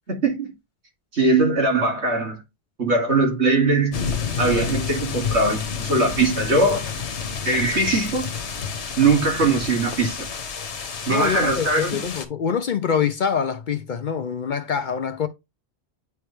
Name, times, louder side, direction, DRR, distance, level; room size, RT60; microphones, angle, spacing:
voice 1, 1.1-2.4 2.8-4.0 4.4-6.8 7.4-8.2 9.0-10.3 11.1-12.0, right 3 dB, 80° right, 2.6 m, -20 dB
sound 1, 3.9-12.3, left 6 dB, 80° left, 1.2 m, -29 dB
voice 2, 11.1-15.3, left 7 dB, 55° left, 0.6 m, -25 dB
9.3 x 3.2 x 3.2 m
omnidirectional pair, 1.1 m